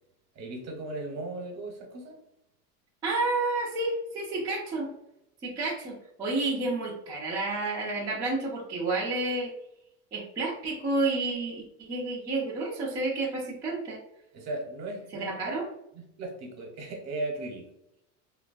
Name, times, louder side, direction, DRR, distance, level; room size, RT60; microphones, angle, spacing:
voice 1, 0.3-2.2 14.3-15.5 15.9-17.6, right 2 dB, 35° right, 1 dB, 0.8 m, -37 dB
voice 2, 3.0-4.9 5.4-9.5 10.1-14.0 15.1-15.6, right 2 dB, 10° right, -7 dB, 0.4 m, -30 dB
3.0 x 2.3 x 2.4 m, 0.80 s
supercardioid pair, 135°, 45 cm